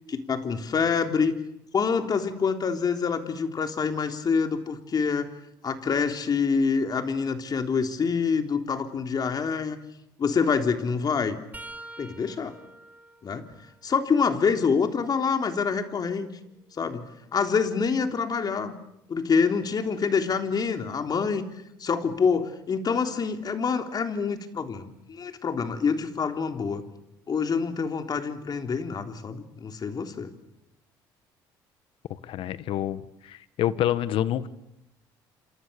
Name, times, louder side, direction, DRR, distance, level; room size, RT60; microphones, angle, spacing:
voice 1, 0.1-1.3 1.7-5.3 5.6-9.8 10.2-11.4 12.0-12.5 13.2-13.5 13.8-16.3 16.8-18.7 19.1-21.5 21.8-26.8 27.3-30.3, left 5 dB, 45° left, 6 dB, 3.5 m, -26 dB
sound 1, 11.5-15.3 15.8-17.8 20.7-20.9 22.1-22.3 23.6-23.7, right 2 dB, 15° right, 3.9 m, -49 dB
voice 2, 32.1-34.5, left 11 dB, 65° left, 15 dB, 1.6 m, -28 dB
28.5 x 27.5 x 7.0 m, 0.81 s
supercardioid pair, 65°, 10 cm